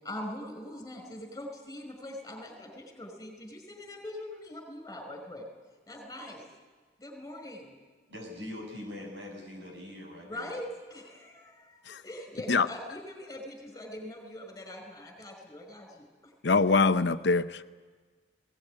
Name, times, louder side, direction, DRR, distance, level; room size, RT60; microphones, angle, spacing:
voice 1, 0.0-5.5 5.9-6.4 7.0-7.7 10.2-16.3, left 1 dB, 20° left, 4 dB, 5.0 m, -42 dB
voice 2, 8.1-10.5, left 1 dB, 70° right, 0 dB, 7.8 m, -42 dB
voice 3, 16.4-17.6, left 4 dB, 70° left, 12 dB, 0.7 m, -24 dB
20.5 x 18.5 x 10.0 m, 1.5 s
head